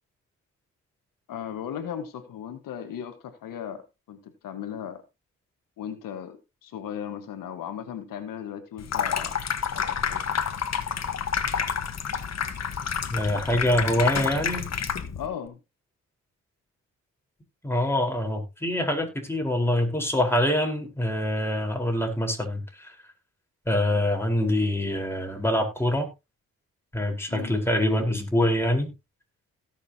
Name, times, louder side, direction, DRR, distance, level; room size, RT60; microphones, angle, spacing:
voice 1, 1.3-5.0 5.8-9.4 9.7-10.2 15.1-15.6 27.3-27.6, left 9 dB, 80° left, 1.5 m, -37 dB
Water tap faucet / Sink (filling or washing), 8.8-15.3, left 7 dB, 50° left, 1.5 m, -29 dB
voice 2, 13.1-14.7 17.6-22.9 23.7-26.1 26.9-28.9, left 1 dB, 5° left, 4.4 m, -25 dB
17.5 x 6.6 x 2.9 m
supercardioid pair, 60°, 32 cm